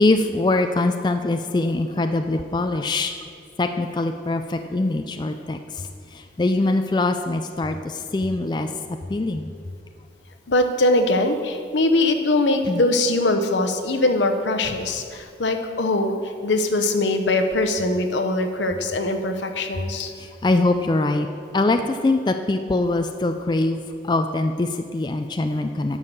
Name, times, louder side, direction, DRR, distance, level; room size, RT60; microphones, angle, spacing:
voice 1, 0.0-3.1 3.6-9.5 12.7-12.8 20.2-21.3 21.5-26.0, left 2 dB, 25° left, 6 dB, 0.3 m, -23 dB
voice 2, 10.5-20.1, left 2 dB, 80° left, 6 dB, 0.9 m, -22 dB
11.0 x 5.6 x 6.7 m, 2.2 s
head